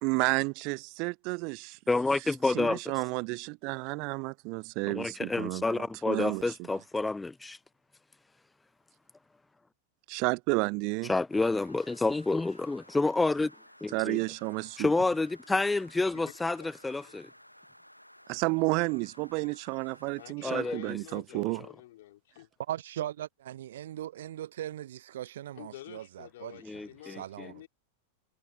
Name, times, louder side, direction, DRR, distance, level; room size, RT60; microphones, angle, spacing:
voice 1, 0.0-1.8 2.5-6.4 10.1-11.1 13.9-14.9 18.3-21.6, right 31 dB, 45° right, 0.8 m, -31 dB
voice 2, 1.9-2.8 4.9-7.6 11.1-13.5 13.8-14.2 14.8-17.3 20.4-21.0 26.6-27.5, left 3 dB, 10° left, 0.4 m, -29 dB
sound 1, 11.3-20.3, equal, 90° left, 1.5 m, -56 dB
voice 3, 16.1-16.7 17.0-17.1 20.2-22.5 25.6-27.7, left 15 dB, 55° left, 3.7 m, -48 dB
voice 4, 22.7-26.6 27.0-27.7, right 12 dB, 60° right, 0.3 m, -39 dB
figure-of-eight pair, 90°, 0 cm